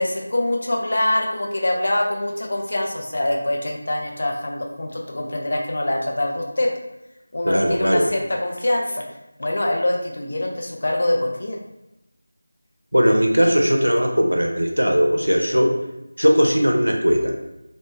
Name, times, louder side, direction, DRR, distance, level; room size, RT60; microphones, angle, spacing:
voice 1, 0.0-6.7 7.3-9.0 9.4-11.6, left 1 dB, 50° left, 1 dB, 0.4 m, -24 dB
voice 2, 7.4-8.1 12.9-15.8 16.2-17.3, equal, 85° right, 2 dB, 0.4 m, -18 dB
2.0 x 2.0 x 3.1 m, 0.90 s
figure-of-eight pair, 170°, 0 cm